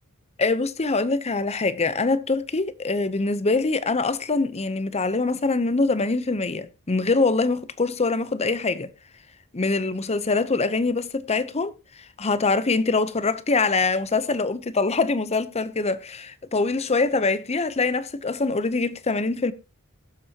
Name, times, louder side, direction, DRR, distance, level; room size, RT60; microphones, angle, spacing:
voice 1, 0.4-8.9 9.5-11.7 12.2-19.5, left 3 dB, 30° left, 0.8 m, -24 dB
20.5 x 7.5 x 2.9 m
head